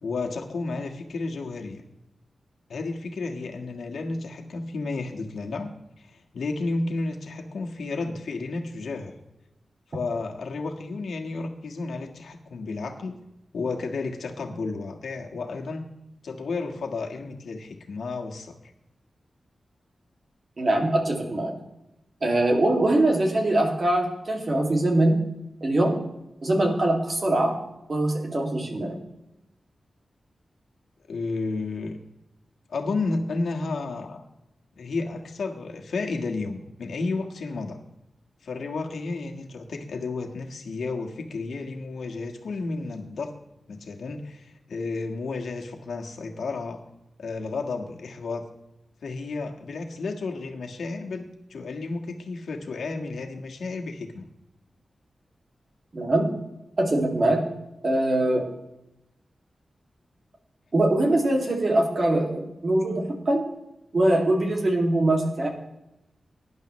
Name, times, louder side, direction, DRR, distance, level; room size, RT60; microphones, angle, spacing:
voice 1, 0.0-1.8 2.7-5.7 6.0-9.1 9.9-13.2 13.5-15.8 16.2-18.5 31.1-32.0 32.7-34.2 34.8-37.8 38.4-43.3 43.7-46.8 47.2-48.5 49.0-54.3, left 3 dB, 85° left, 2 dB, 1.5 m, -32 dB
voice 2, 20.6-21.5 22.2-25.2 25.6-26.0 26.4-27.6 27.9-29.0 55.9-56.3 56.8-57.5 57.8-58.5 60.7-63.4 63.9-65.5, right 1 dB, 40° right, 1 dB, 2.3 m, -22 dB
18.5 x 10.5 x 3.1 m, 0.90 s
wide cardioid pair, 150°, 0 cm